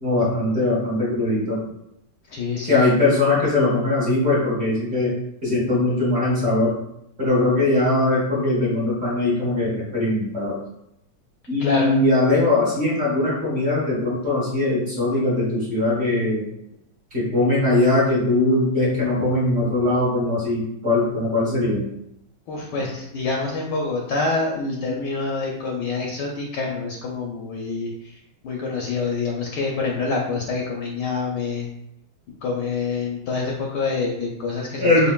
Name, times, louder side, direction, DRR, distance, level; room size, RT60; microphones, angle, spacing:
voice 1, 0.0-1.6 2.7-5.1 5.4-6.7 7.2-10.6 11.5-16.4 17.1-21.8 34.8-35.1, left 2 dB, 35° right, -8 dB, 1.3 m, -20 dB
voice 2, 2.3-2.9 11.6-12.0 22.5-28.2 28.4-31.7 32.4-35.1, left 4 dB, 75° left, -2 dB, 1.0 m, -26 dB
5.1 x 2.5 x 2.3 m, 0.79 s
omnidirectional pair, 2.3 m